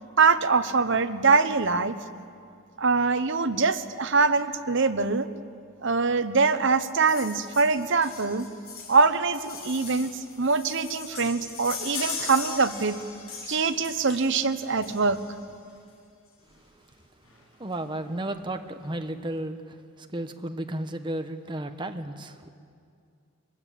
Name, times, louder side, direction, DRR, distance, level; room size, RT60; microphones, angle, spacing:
voice 1, 0.2-1.9 2.8-5.3 5.8-8.5 8.9-10.1 10.4-13.0 13.4-15.2, right 4 dB, 60° right, 11 dB, 1.0 m, -23 dB
sound 1, 7.1-15.4 16.5-16.6 16.9-17.0 17.2-17.4 17.7-18.3 18.8-18.9, left 5 dB, 90° left, 7.1 m, -39 dB
voice 2, 17.6-19.6 20.1-22.5, right 1 dB, 25° right, 6 dB, 1.1 m, -33 dB
23.0 x 21.0 x 8.6 m, 2.3 s
head